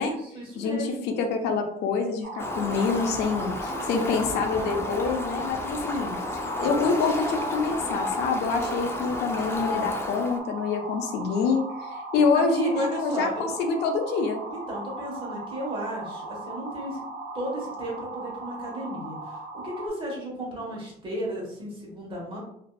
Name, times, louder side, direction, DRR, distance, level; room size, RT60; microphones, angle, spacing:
voice 1, 0.0-1.1 12.3-13.4 14.5-17.0 17.3-22.4, right 1 dB, 30° right, -3 dB, 1.1 m, -34 dB
voice 2, 0.6-6.2 6.6-14.4, left 4 dB, 80° left, 4 dB, 0.5 m, -26 dB
sound 1, 2.2-19.9, right 2 dB, 70° right, 0.7 m, -38 dB
Fowl, 2.4-10.4, left 2 dB, 15° left, 0.3 m, -32 dB
2.6 x 2.3 x 2.2 m, 0.73 s
cardioid pair, 110°, 17 cm